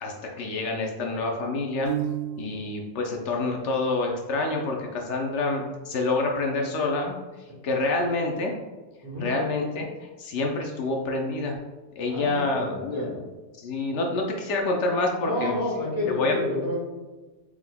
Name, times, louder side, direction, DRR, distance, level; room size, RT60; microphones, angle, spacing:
voice 1, 0.0-1.9 2.4-7.2 7.6-8.5 9.2-11.6 12.0-13.2 13.6-15.5 16.1-16.3, left 3 dB, 75° left, 1 dB, 0.9 m, -27 dB
Piano, 1.9-2.8, right 11 dB, 70° right, 1.0 m, -31 dB
voice 2, 9.0-9.4 12.1-13.2 15.2-16.8, left 1 dB, 15° right, -5 dB, 1.4 m, -29 dB
4.7 x 3.6 x 2.2 m, 1.2 s
omnidirectional pair, 1.2 m